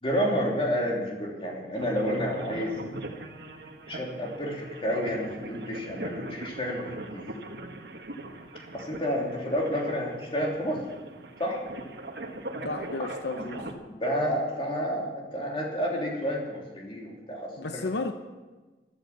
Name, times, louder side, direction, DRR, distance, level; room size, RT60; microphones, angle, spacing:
voice 1, 0.0-2.7 3.9-7.3 8.7-10.8 11.4-11.6 14.0-17.9, equal, 30° left, -1 dB, 3.0 m, -30 dB
sound 1, 1.7-13.7, right 1 dB, 70° right, 1.6 m, -40 dB
voice 2, 12.6-13.6 17.6-18.1, left 3 dB, 80° left, 8 dB, 0.8 m, -33 dB
13.0 x 12.0 x 7.2 m, 1.2 s
head